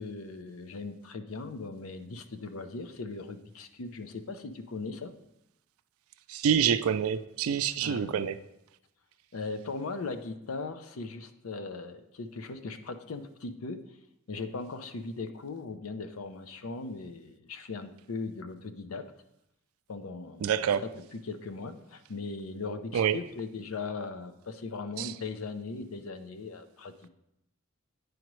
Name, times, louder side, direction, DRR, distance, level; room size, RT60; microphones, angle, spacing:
voice 1, 0.0-5.1 7.8-8.3 9.3-13.8 14.3-19.0 19.9-20.5 20.8-27.1, left 3 dB, 85° left, 0.6 m, -39 dB
voice 2, 6.3-8.3 20.4-20.8 22.9-23.2 25.0-25.1, right 8 dB, 85° right, 0.4 m, -27 dB
9.3 x 4.9 x 3.1 m
head